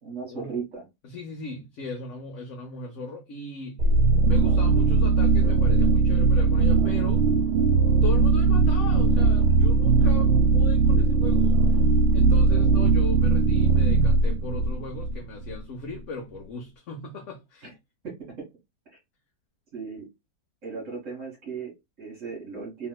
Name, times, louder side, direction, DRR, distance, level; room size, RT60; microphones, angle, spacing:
voice 1, 0.0-0.8 17.6-17.7 18.0-18.5 19.7-20.1 20.6-22.9, right 5 dB, 55° right, 1.7 m, -36 dB
voice 2, 1.0-3.9 4.2-7.3 8.0-11.8 12.1-17.8, left 3 dB, 60° left, 0.9 m, -38 dB
sound 1, 3.8-15.6, right 4 dB, 85° right, 1.1 m, -20 dB
3.1 x 2.9 x 2.2 m
omnidirectional pair, 1.6 m